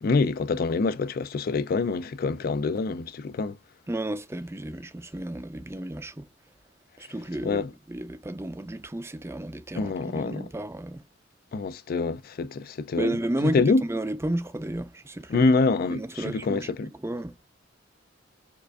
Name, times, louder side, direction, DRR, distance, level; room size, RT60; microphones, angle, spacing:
voice 1, 0.0-3.6 7.4-7.7 9.7-10.5 11.5-13.8 15.3-16.9, left 3 dB, 50° left, 0.4 m, -26 dB
voice 2, 3.9-6.3 7.0-11.0 12.9-15.4 15.9-16.7 17.0-17.3, right 1 dB, 15° right, 0.5 m, -32 dB
4.5 x 2.5 x 2.3 m
head